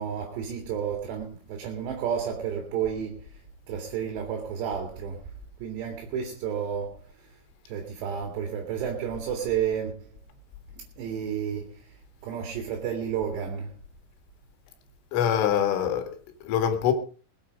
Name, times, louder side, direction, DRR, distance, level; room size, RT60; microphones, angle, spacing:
voice 1, 0.0-3.3 3.7-5.2 5.6-7.0 7.7-10.1 11.0-11.7 12.2-13.7, right 8 dB, 65° right, 4.1 m, -31 dB
voice 2, 15.1-16.1 16.4-16.9, left 9 dB, 80° left, 4.4 m, -24 dB
21.5 x 9.1 x 5.1 m
omnidirectional pair, 5.6 m